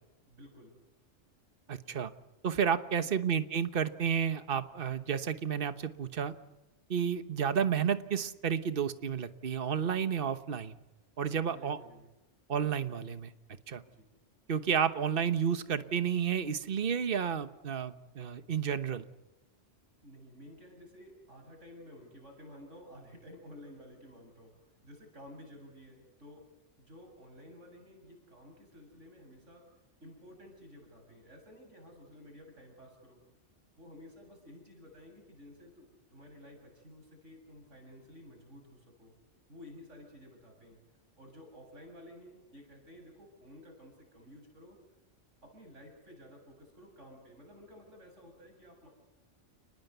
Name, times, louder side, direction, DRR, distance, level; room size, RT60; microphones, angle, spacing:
voice 1, 0.3-0.7 3.0-3.2 11.4-12.1 13.9-14.1 20.0-26.5 26.8-29.7 30.0-33.2 33.8-39.1 39.5-40.8 41.2-44.8 45.4-48.9, left 1 dB, 85° right, 2 dB, 8.4 m, -53 dB
voice 2, 1.7-2.1 2.4-6.3 6.9-10.8 11.2-11.8 12.5-13.3 13.7-13.8 14.5-19.0, right 7 dB, 50° right, 11 dB, 1.3 m, -31 dB
30.0 x 20.0 x 8.1 m, 1.0 s
omnidirectional pair, 1.2 m